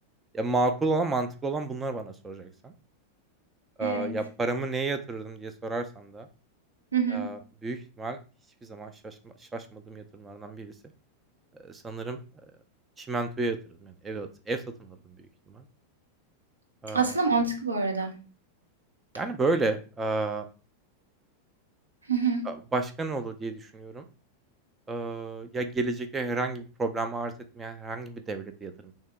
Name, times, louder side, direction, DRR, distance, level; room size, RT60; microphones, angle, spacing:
voice 1, 0.3-2.7 3.8-6.3 7.1-8.2 8.6-10.7 11.6-12.2 13.0-13.6 13.8-15.0 15.5-15.6 16.8-17.1 19.1-20.5 22.5-24.0 24.9-28.9, right 3 dB, 15° right, 8 dB, 0.5 m, -31 dB
voice 2, 3.8-4.2 6.9-7.3 16.9-18.2 22.1-22.5, right 5 dB, 80° right, 1 dB, 0.8 m, -26 dB
3.5 x 2.8 x 3.3 m, 0.34 s
figure-of-eight pair, 90°, 0 cm